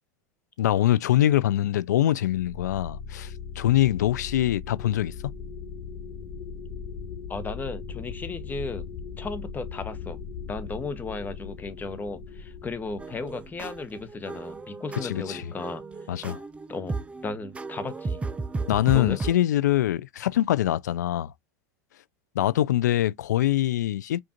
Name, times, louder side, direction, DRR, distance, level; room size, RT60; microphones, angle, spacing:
voice 1, 0.6-5.1 15.0-15.5 16.1-16.4 18.7-21.3 22.4-24.2, left 13 dB, 85° left, 0.4 m, -24 dB
sound 1, 2.3-14.6, left 6 dB, 45° left, 1.2 m, -39 dB
voice 2, 7.3-8.9 9.2-10.2 10.5-15.8 16.7-18.2 18.9-19.2, left 3 dB, 20° left, 0.9 m, -35 dB
sound 2, 13.0-19.3, right 3 dB, 15° right, 0.4 m, -35 dB
5.0 x 2.4 x 2.8 m
hypercardioid pair, 100°, 9 cm